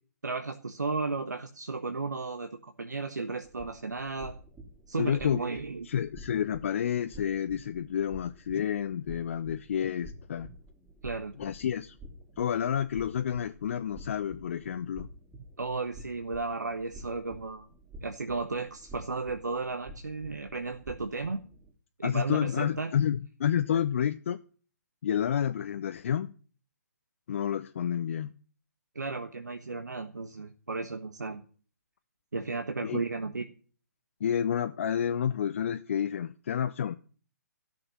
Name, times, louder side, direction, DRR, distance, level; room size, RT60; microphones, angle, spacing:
voice 1, 0.2-4.4 4.9-5.9 11.0-11.3 15.6-17.7 18.0-21.4 22.0-22.9 28.9-31.4 32.3-33.4, right 3 dB, 75° right, 1.3 m, -34 dB
sound 1, 3.4-21.7, equal, 15° right, 2.9 m, -50 dB
voice 2, 5.0-5.4 5.9-10.5 11.4-12.0 12.4-15.1 22.0-24.4 25.0-26.3 27.3-28.3 32.8-33.0 34.2-37.0, left 9 dB, 45° left, 0.7 m, -29 dB
13.5 x 6.8 x 10.0 m
figure-of-eight pair, 135°, 9 cm